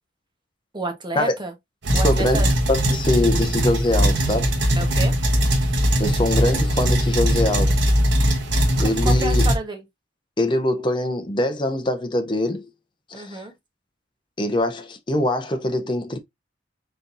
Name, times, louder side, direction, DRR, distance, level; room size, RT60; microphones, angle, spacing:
voice 1, 0.7-1.5 1.9-2.5 4.8-5.1 8.8-9.8 13.1-13.5, right 2 dB, 25° right, 1.1 m, -30 dB
sound 1, 1.8-9.6, equal, 70° right, 1.1 m, -20 dB
voice 2, 2.0-2.4 2.7-4.5 6.0-7.8 8.8-9.5 10.4-12.6 13.1-13.4 14.4-16.2, left 1 dB, 25° left, 0.7 m, -23 dB
4.3 x 3.8 x 2.6 m
head